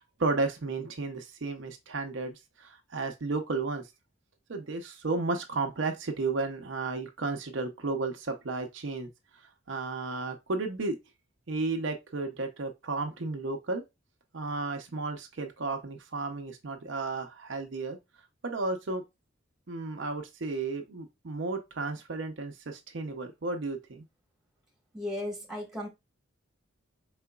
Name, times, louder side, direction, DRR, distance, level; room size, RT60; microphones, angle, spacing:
voice 1, 0.2-3.8 4.5-9.1 9.7-11.0 11.5-13.8 14.3-18.0 18.4-19.0 19.7-24.0, right 3 dB, 60° right, 0.7 m, -33 dB
voice 2, 24.9-25.9, left 1 dB, ahead, 1.5 m, -35 dB
4.9 x 3.7 x 2.3 m
head